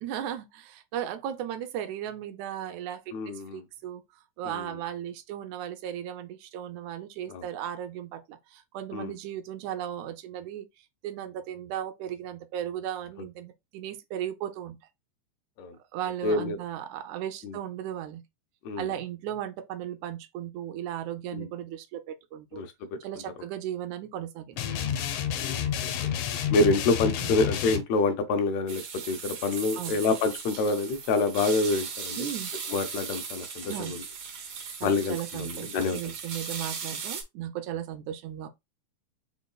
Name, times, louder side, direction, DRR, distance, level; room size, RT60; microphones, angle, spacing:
voice 1, 0.0-4.0 4.4-10.7 11.0-14.8 15.9-18.2 18.8-22.6 23.0-25.0 27.2-27.3 29.7-30.0 32.2-32.5 33.7-34.0 34.8-38.5, right 10 dB, 85° right, 2.0 m, -36 dB
voice 2, 3.1-3.6 4.5-4.6 7.3-7.4 8.9-9.1 15.6-15.7 16.2-16.6 17.4-17.5 18.7-18.9 21.3-21.5 22.5-22.7 25.4-25.9 26.5-28.8 29.1-32.3 32.7-34.0 34.8-36.0, left 3 dB, 75° left, 1.8 m, -27 dB
sound 1, 24.6-27.8, left 9 dB, 90° left, 2.1 m, -29 dB
sound 2, 28.7-37.2, right 6 dB, 60° right, 1.8 m, -38 dB
4.5 x 4.1 x 2.3 m
omnidirectional pair, 3.3 m